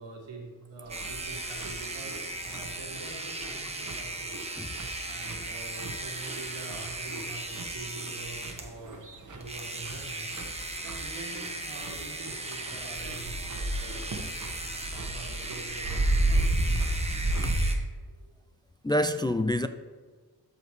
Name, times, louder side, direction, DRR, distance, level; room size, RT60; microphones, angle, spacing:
voice 1, 0.0-4.5 5.1-9.0 9.3-10.3 10.8-14.1 14.7-17.4 18.1-18.2, right 3 dB, 85° right, 1.8 m, -45 dB
sound 1, 0.9-8.7 9.4-17.7, right 2 dB, 15° right, 1.1 m, -37 dB
sound 2, 0.9-17.8, right 1 dB, 45° right, 1.2 m, -33 dB
voice 2, 4.6-4.9 17.4-17.5 18.8-19.7, left 1 dB, 10° left, 0.3 m, -27 dB
13.5 x 5.0 x 3.2 m
cardioid pair, 60°, 43 cm